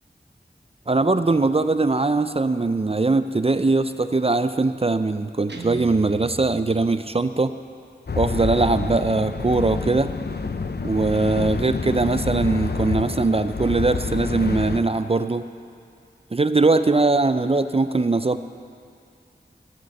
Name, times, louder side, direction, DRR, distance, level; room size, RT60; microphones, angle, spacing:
voice 1, 0.9-7.5 8.2-10.1 10.8-15.4 16.3-18.4, right 3 dB, 35° right, 11 dB, 0.4 m, -21 dB
Guitar, 5.5-7.5, right 3 dB, 75° right, 1.1 m, -39 dB
sound 1, 8.1-14.8, left 4 dB, 65° left, 0.6 m, -28 dB
16.0 x 6.8 x 6.5 m, 2.5 s
wide cardioid pair, 45°, 18 cm